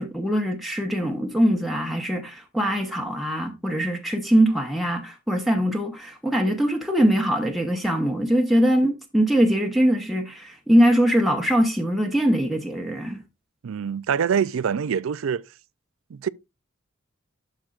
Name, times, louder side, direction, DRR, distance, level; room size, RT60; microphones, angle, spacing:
voice 1, 0.0-13.2, equal, ahead, 0.9 m, -22 dB
voice 2, 13.6-15.4 16.1-16.3, right 7 dB, 90° right, 0.4 m, -25 dB
11.5 x 6.3 x 2.4 m
head